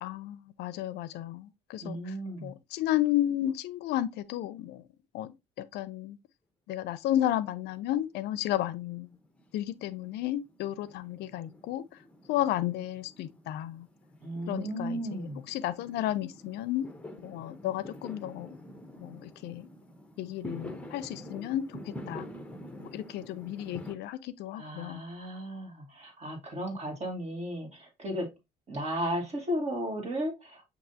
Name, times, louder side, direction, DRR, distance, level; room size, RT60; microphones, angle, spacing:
voice 1, 0.0-2.0 2.4-4.8 5.1-5.3 5.7-6.2 6.7-9.1 9.5-11.8 12.3-13.9 14.5-15.0 15.5-16.9 17.2-18.6 19.0-19.7 20.2-22.3 22.9-25.0, left 13 dB, 75° left, 0.4 m, -32 dB
voice 2, 1.8-2.5 14.2-15.4 24.5-28.3 28.7-30.6, equal, 40° right, 1.8 m, -35 dB
Fireworks, 7.5-8.4 8.7-23.9, left 1 dB, 5° left, 0.7 m, -47 dB
7.2 x 2.7 x 2.6 m
cardioid pair, 110°, 17 cm